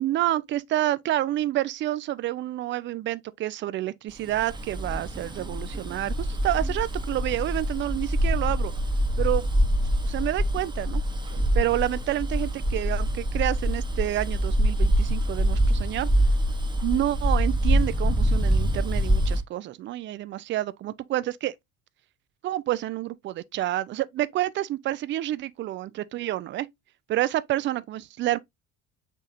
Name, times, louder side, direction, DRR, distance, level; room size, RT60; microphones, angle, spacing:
voice 1, 0.0-8.7 9.2-9.5 10.0-11.0 11.5-16.1 16.8-21.5 22.4-26.7 27.1-28.4, right 14 dB, 30° right, 0.4 m, -28 dB
Bus, 4.3-19.4, equal, 10° right, 0.9 m, -25 dB
5.9 x 3.5 x 2.5 m
figure-of-eight pair, 60°, 40 cm